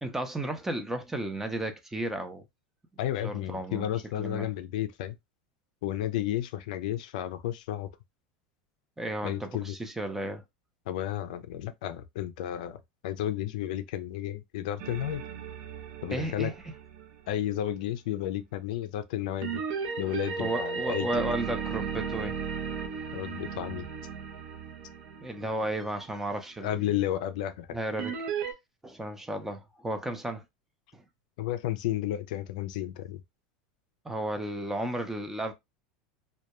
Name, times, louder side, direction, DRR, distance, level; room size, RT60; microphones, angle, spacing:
voice 1, 0.0-2.4 3.2-3.9 4.2-4.5 9.0-10.4 16.1-16.5 20.4-22.4 25.2-26.9 27.7-28.1 28.8-30.4 30.9-31.0 34.0-35.5, right 1 dB, 10° right, 0.5 m, -33 dB
voice 2, 3.0-5.2 5.8-7.9 9.2-9.8 10.9-12.8 13.0-15.2 16.0-16.5 17.3-19.6 20.0-21.1 23.1-23.9 26.6-27.7 31.4-33.2, left 12 dB, 75° left, 0.3 m, -32 dB
sound 1, 14.8-17.5 19.4-25.9 28.0-28.5, right 6 dB, 65° right, 0.6 m, -35 dB
2.2 x 2.1 x 2.9 m
supercardioid pair, 120°, 4 cm